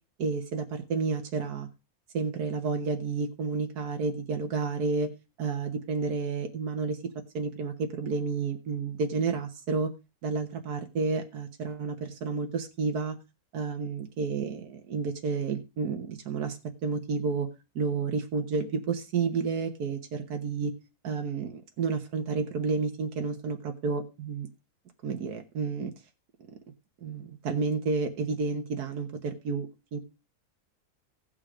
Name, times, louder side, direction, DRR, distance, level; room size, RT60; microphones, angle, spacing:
voice 1, 0.2-1.7 2.1-5.1 5.4-7.0 7.3-9.9 10.2-13.2 13.5-17.5 17.7-20.7 21.0-24.5 25.0-25.9 27.0-30.0, right 4 dB, 85° right, 5 dB, 1.7 m, -30 dB
16.0 x 5.6 x 4.9 m, 0.28 s
omnidirectional pair, 1.6 m